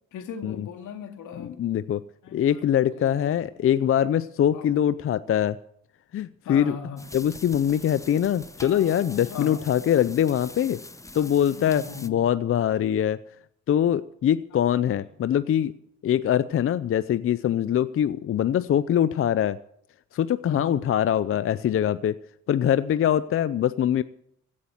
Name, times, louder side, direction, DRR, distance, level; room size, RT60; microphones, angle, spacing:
voice 1, 0.1-1.6 2.2-2.6 2.9-3.4 4.5-4.8 6.4-7.1 8.7-8.8 9.3-9.7 11.1-12.2 14.5-14.6 15.2-15.3 20.4-20.9, left 6 dB, 80° left, 6 dB, 2.4 m, -39 dB
voice 2, 1.4-2.0 2.3-5.6 6.1-6.8 7.1-10.8 11.1-13.2 13.7-15.7 16.0-19.6 20.1-22.2 22.5-24.0, left 10 dB, 45° left, 15 dB, 0.5 m, -23 dB
sound 1, 7.0-12.1, left 2 dB, 10° left, 0.8 m, -43 dB
16.0 x 8.6 x 7.9 m, 0.72 s
cardioid pair, 90°, 30 cm